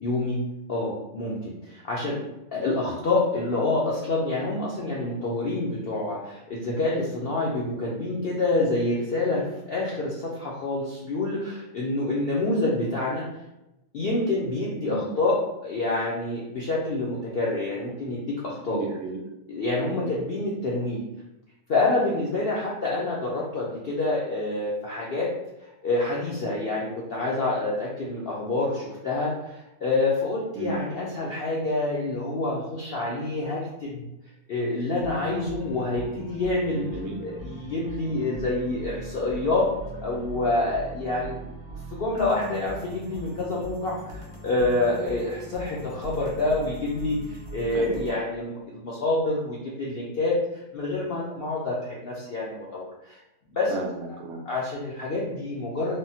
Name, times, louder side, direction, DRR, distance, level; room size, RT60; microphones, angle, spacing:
voice 1, 0.0-2.2 2.5-13.2 13.9-18.8 19.5-21.0 21.7-25.3 25.8-34.0 34.5-36.8 37.2-39.7 40.0-41.4 41.9-53.2 53.6-53.7 54.5-56.0, left 2 dB, 75° left, -5 dB, 0.5 m, -27 dB
voice 2, 18.6-19.2 19.9-20.1 30.6-30.8 36.7-37.2 47.7-48.0 53.7-54.5, right 3 dB, 65° right, 1 dB, 0.7 m, -34 dB
sound 1, 35.0-48.1, right 1 dB, 35° right, 0.3 m, -41 dB
3.5 x 2.0 x 2.7 m, 0.94 s
omnidirectional pair, 1.6 m